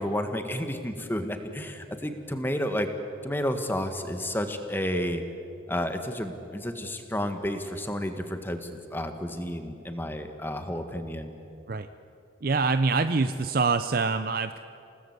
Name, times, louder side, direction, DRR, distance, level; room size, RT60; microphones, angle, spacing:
voice 1, 0.0-2.9 3.2-5.2 5.7-11.3, equal, 10° left, 6 dB, 1.6 m, -31 dB
voice 2, 12.4-14.6, right 4 dB, 50° right, 10 dB, 0.6 m, -25 dB
28.5 x 18.5 x 8.2 m, 2.8 s
head